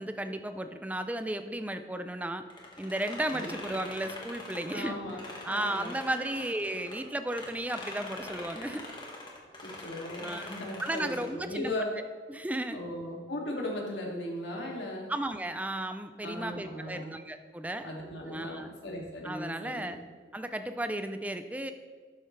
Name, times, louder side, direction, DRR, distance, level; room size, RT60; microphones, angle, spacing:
voice 1, 0.0-2.4 2.8-5.0 5.4-8.8 10.2-10.5 10.8-12.0 12.3-12.8 15.1-17.9 18.3-18.7 19.2-20.0 20.3-21.7, right 1 dB, 10° right, 9 dB, 0.5 m, -34 dB
sound 1, 2.5-7.0 7.3-11.4, left 2 dB, 25° left, 1.6 m, -43 dB
voice 2, 4.7-5.2 5.5-6.2 9.6-11.9 12.7-15.1 16.2-17.1 17.8-20.0, left 1 dB, 80° left, -2 dB, 2.5 m, -37 dB
12.0 x 9.7 x 3.3 m, 1.5 s
head